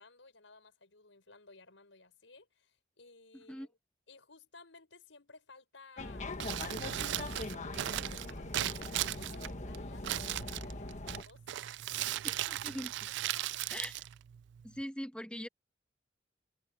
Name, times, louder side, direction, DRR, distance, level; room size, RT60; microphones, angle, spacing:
voice 1, 0.0-3.7 4.1-11.8 12.1-12.4 13.1-13.7, left 3 dB, 85° left, 5.5 m, -57 dB
sound 1, 6.0-11.2, left 2 dB, 40° left, 1.3 m, -41 dB
Crumpling crinkling, 6.3-14.8, right 14 dB, 65° right, 0.3 m, -38 dB
voice 2, 12.2-13.1 13.7-14.0 14.6-15.5, equal, 5° left, 1.2 m, -42 dB
head